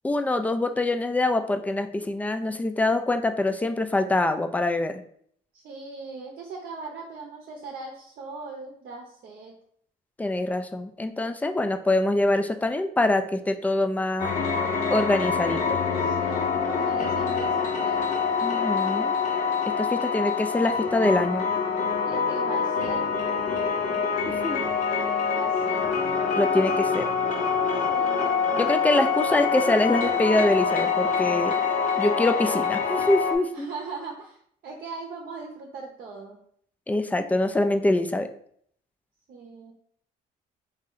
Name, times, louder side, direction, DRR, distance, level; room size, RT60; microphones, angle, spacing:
voice 1, 0.0-5.0 10.2-14.3 14.9-15.8 18.4-19.1 19.8-21.4 24.3-24.6 26.3-27.0 28.6-31.5 32.0-33.7 36.9-38.3, left 2 dB, 10° left, 8 dB, 0.3 m, -24 dB
voice 2, 5.5-9.5 16.0-18.1 22.0-23.1 25.3-25.9 26.5-26.9 27.9-28.6 33.5-36.4 39.3-39.7, right 4 dB, 60° right, 0 dB, 0.7 m, -39 dB
sound 1, 14.2-33.4, left 5 dB, 45° left, 0.8 m, -25 dB
3.1 x 2.8 x 3.8 m, 0.63 s
cardioid pair, 110°, 17 cm